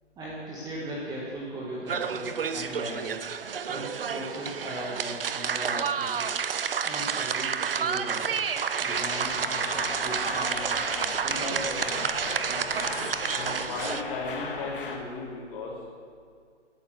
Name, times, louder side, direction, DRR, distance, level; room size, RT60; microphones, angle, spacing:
voice 1, 0.2-3.2 3.7-6.4 6.8-8.3 8.8-10.7 11.2-12.2, right 1 dB, 10° right, -5 dB, 1.6 m, -38 dB
sound 1, 1.9-14.0, right 7 dB, 50° right, 0.7 m, -30 dB
sound 2, 8.9-15.0, left 4 dB, 45° left, 2.1 m, -37 dB
voice 2, 13.3-15.7, left 3 dB, 30° left, -3 dB, 3.5 m, -35 dB
17.5 x 9.1 x 6.5 m, 2.1 s
figure-of-eight pair, 130°, 36 cm